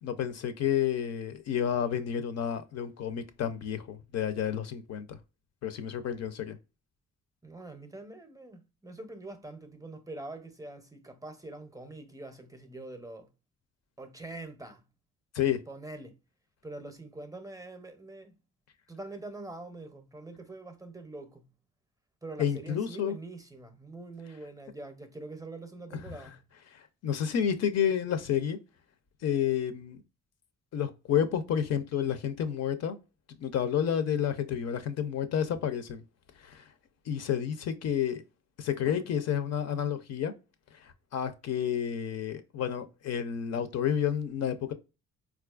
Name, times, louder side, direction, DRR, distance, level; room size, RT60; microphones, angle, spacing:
voice 1, 0.0-5.2 5.6-6.6 15.3-15.6 22.4-23.2 26.1-26.2 26.7-28.6 29.2-30.0 30.7-33.0 33.3-36.0 36.4-36.6 37.1-38.2 38.6-40.3 40.8-44.7, left 9 dB, 60° left, 0.5 m, -30 dB
voice 2, 7.4-13.3 14.0-14.8 15.7-16.1 16.6-18.3 18.9-21.5 22.2-26.4, right 2 dB, 10° right, 0.6 m, -44 dB
4.1 x 2.4 x 2.3 m
cardioid pair, 90°, 30 cm